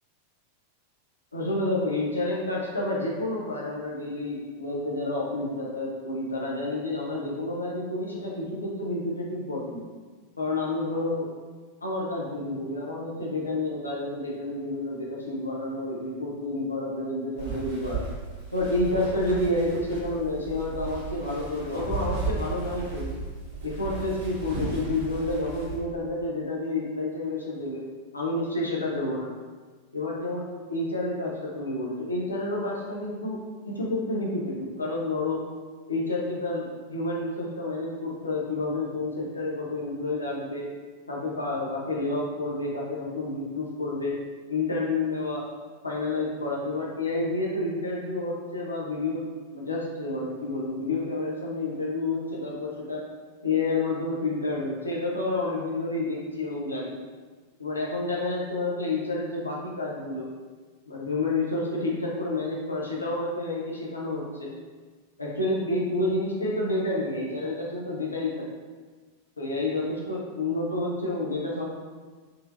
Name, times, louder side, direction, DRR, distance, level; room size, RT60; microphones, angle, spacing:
voice 1, 1.3-9.8 10.4-11.3 11.8-18.0 18.5-23.1 23.6-27.8 28.1-29.3 29.9-33.4 33.7-35.4 35.9-40.7 41.1-44.2 44.5-45.5 45.8-49.3 49.5-53.0 53.4-57.0 57.6-60.3 60.9-64.5 65.2-68.5 69.4-71.6, left 2 dB, 80° left, -3 dB, 0.7 m, -29 dB
sound 1, 17.4-25.8, right 4 dB, 50° right, 1.2 m, -35 dB
3.9 x 2.7 x 2.5 m, 1.4 s
figure-of-eight pair, 90°, 0 cm